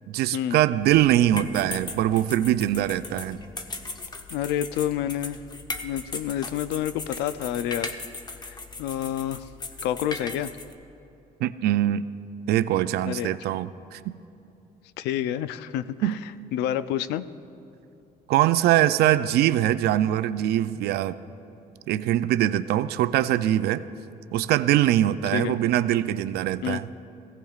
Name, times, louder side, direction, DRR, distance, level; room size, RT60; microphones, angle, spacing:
voice 1, 0.1-3.4 11.4-12.1 12.5-14.2 16.0-16.2 18.3-21.1 21.9-23.8 24.3-26.9, right 12 dB, 75° right, 14 dB, 0.4 m, -23 dB
sound 1, 0.8-10.7, left 3 dB, 25° left, 0.7 m, -38 dB
voice 2, 4.3-5.4 5.8-8.0 8.4-9.5 9.8-10.5 13.0-13.3 15.0-16.2 16.5-17.3 25.3-25.6 26.6-26.8, left 11 dB, 85° left, 14 dB, 0.4 m, -28 dB
17.5 x 16.0 x 2.4 m, 2.6 s
cardioid pair, 110°, 17 cm